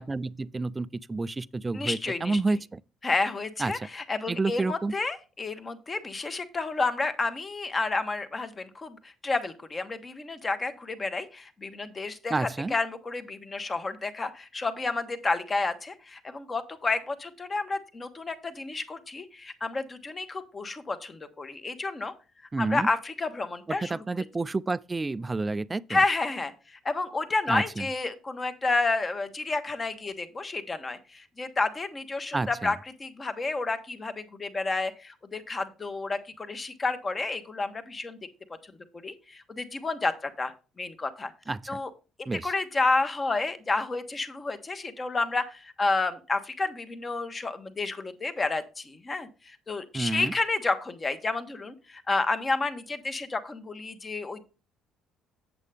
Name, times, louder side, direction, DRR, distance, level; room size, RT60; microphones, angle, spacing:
voice 1, 0.0-2.8 3.6-3.9 4.3-4.9 12.3-12.8 22.5-22.9 23.7-26.0 27.5-27.9 32.3-32.8 41.5-41.8 42.3-42.5 49.9-50.3, right 3 dB, 15° right, 0.3 m, -30 dB
voice 2, 1.7-2.4 3.0-12.3 12.7-22.1 22.6-23.9 25.9-38.2 39.0-41.3 41.7-41.9 42.4-54.4, left 3 dB, 25° left, 1.0 m, -30 dB
8.2 x 7.6 x 3.4 m
cardioid pair, 130°, 0 cm